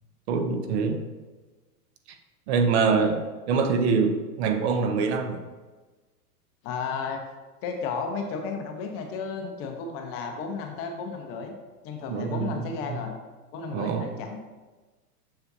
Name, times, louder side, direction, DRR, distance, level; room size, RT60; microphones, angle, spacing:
voice 1, 0.3-1.0 2.5-3.2 3.5-5.4 12.1-12.6 12.9-13.0 13.7-14.1, right 5 dB, 45° right, 7 dB, 0.6 m, -24 dB
voice 2, 6.6-7.2 7.6-11.5 11.8-13.1 13.5-14.4, left 5 dB, 30° left, 3 dB, 0.7 m, -33 dB
6.7 x 5.5 x 2.7 m, 1.3 s
hypercardioid pair, 125°, 48 cm